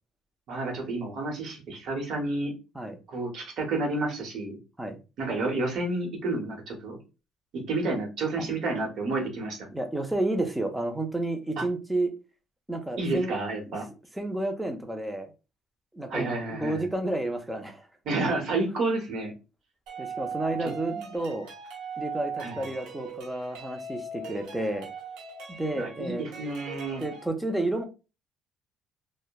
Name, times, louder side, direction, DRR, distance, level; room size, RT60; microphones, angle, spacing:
voice 1, 0.5-2.5 3.1-4.6 5.2-7.0 7.7-9.6 11.6-11.7 13.0-13.9 16.1-16.9 18.1-19.3 20.6-20.7 21.0-21.1 22.4-22.6 25.7-27.0, right 2 dB, 55° right, 1 dB, 0.9 m, -30 dB
voice 2, 9.7-12.1 12.7-13.3 13.7-13.8 14.1-15.3 15.9-17.9 20.0-21.5 22.0-24.9 25.6-26.2 27.0-27.8, right 1 dB, 5° right, 5 dB, 0.4 m, -31 dB
sound 1, 19.9-27.2, right 5 dB, 85° right, 0.9 m, -39 dB
2.8 x 2.1 x 2.2 m, 0.30 s
cardioid pair, 155°, 0 cm